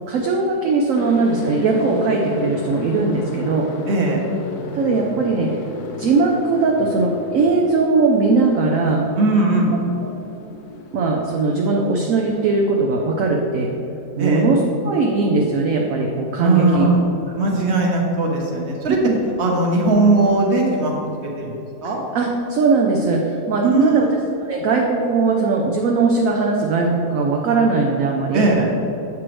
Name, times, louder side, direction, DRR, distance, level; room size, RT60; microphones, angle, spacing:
voice 1, 0.1-3.7 4.7-5.6 6.0-9.0 10.0-10.1 10.9-13.7 14.2-16.9 19.0-19.2 22.1-24.1 24.4-28.5, right 3 dB, 65° right, 0 dB, 1.0 m, -19 dB
sound 1, 0.9-12.7, left 3 dB, 80° left, 1.2 m, -33 dB
voice 2, 3.9-4.2 9.2-9.7 14.2-14.4 16.4-17.0 17.4-19.0 19.4-22.0 23.6-24.1 28.3-28.7, right 2 dB, 50° right, 0 dB, 1.2 m, -19 dB
7.5 x 6.0 x 3.1 m, 3.0 s
omnidirectional pair, 1.6 m